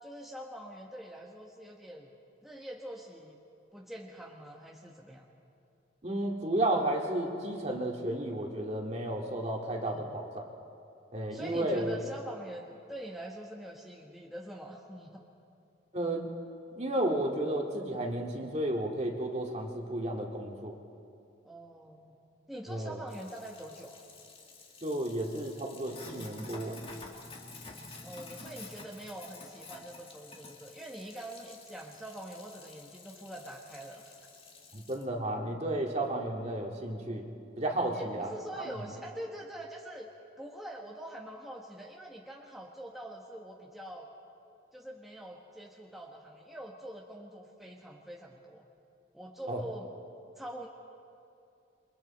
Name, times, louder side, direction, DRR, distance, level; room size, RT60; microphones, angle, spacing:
voice 1, 0.0-2.1 2.4-3.4 3.7-5.3 9.8-10.2 11.3-15.2 21.4-22.1 22.5-24.0 28.0-34.2 37.9-40.1 40.4-44.1 44.7-48.6 49.1-49.9 50.4-50.7, right 1 dB, ahead, -2 dB, 1.3 m, -44 dB
voice 2, 6.0-10.4 11.1-11.9 15.9-16.3 16.8-20.7 22.7-23.0 24.8-26.8 34.7-37.3 37.6-38.3 38.7-38.8 49.5-49.6, right 1 dB, 35° right, 1 dB, 2.1 m, -32 dB
Sink (filling or washing), 23.1-35.0, left 3 dB, 30° left, 2.0 m, -50 dB
28.5 x 23.5 x 4.3 m, 2.6 s
head